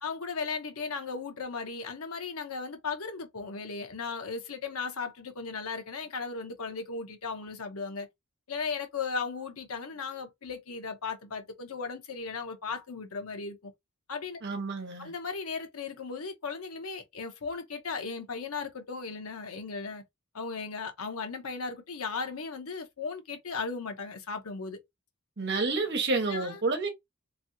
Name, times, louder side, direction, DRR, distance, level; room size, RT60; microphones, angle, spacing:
voice 1, 0.0-8.1 8.5-13.7 14.1-14.4 15.0-20.0 20.3-24.8 26.3-26.6, left 4 dB, 90° left, 0.9 m, -36 dB
voice 2, 14.4-15.1 25.4-26.9, right 3 dB, 55° right, 1.2 m, -29 dB
3.1 x 2.7 x 2.6 m
head